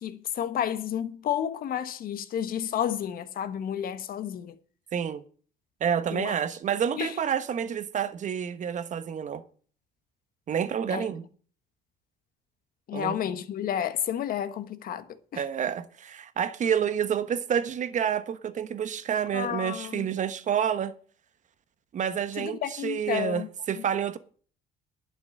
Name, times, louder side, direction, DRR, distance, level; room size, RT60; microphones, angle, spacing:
voice 1, 0.0-4.5 6.1-6.4 6.9-7.1 10.9-11.0 12.9-15.0 15.3-15.4 19.3-20.1 22.4-23.5, left 10 dB, 60° left, 1.3 m, -31 dB
voice 2, 4.9-5.2 5.8-9.4 10.5-11.2 12.9-13.4 15.3-20.9 21.9-24.2, right 8 dB, 45° right, 1.2 m, -29 dB
11.0 x 6.0 x 8.7 m
cardioid pair, 110°, 17 cm